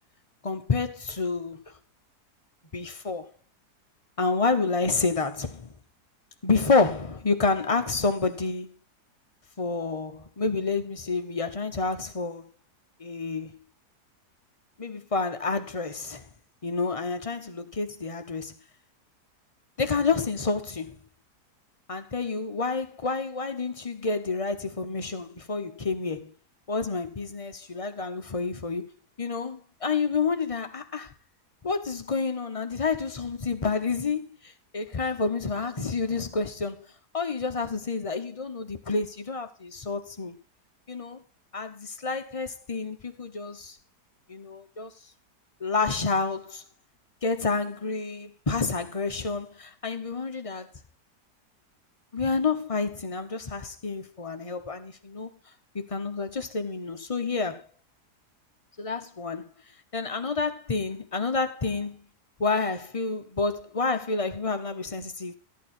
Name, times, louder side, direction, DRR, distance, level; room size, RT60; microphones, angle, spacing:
voice 1, 0.4-1.6 2.7-3.3 4.2-5.7 6.4-8.7 9.6-12.5 13.0-13.5 14.8-16.3 16.6-18.5 19.8-21.0 21.9-26.3 26.7-28.9 29.2-31.1 31.6-36.8 37.1-40.4 40.9-41.2 41.5-43.8 44.3-44.9 45.6-46.6 47.2-50.7 52.1-55.3 55.7-57.7 58.8-59.5 59.9-62.0 62.4-65.3, left 4 dB, 30° left, 0.7 m, -29 dB
13.0 x 9.1 x 4.3 m
omnidirectional pair, 1.7 m